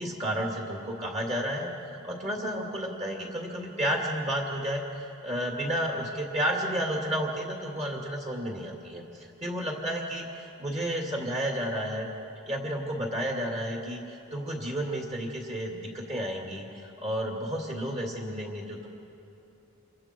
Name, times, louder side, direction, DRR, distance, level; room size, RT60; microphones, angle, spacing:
voice 1, 0.0-12.1 12.5-18.9, equal, 35° right, 0 dB, 2.5 m, -32 dB
27.5 x 24.5 x 4.6 m, 2.8 s
head